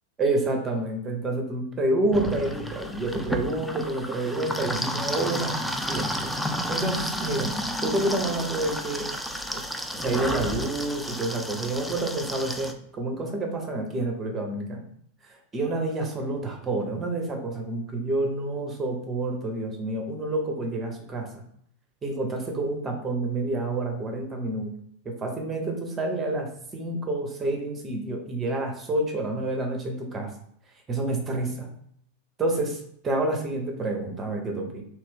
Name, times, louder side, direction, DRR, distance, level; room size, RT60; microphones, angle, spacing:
voice 1, 0.2-5.5 5.9-6.3 6.7-7.5 7.8-9.0 9.5-9.6 9.9-14.9 15.2-21.4 22.0-24.8 25.0-30.3 30.9-31.7 32.4-32.8 33.0-34.8, right 2 dB, 20° right, 2 dB, 0.7 m, -28 dB
sound 1, 2.1-12.7, equal, ahead, 0.3 m, -31 dB
2.7 x 2.6 x 3.5 m, 0.68 s
figure-of-eight pair, 90°, 0 cm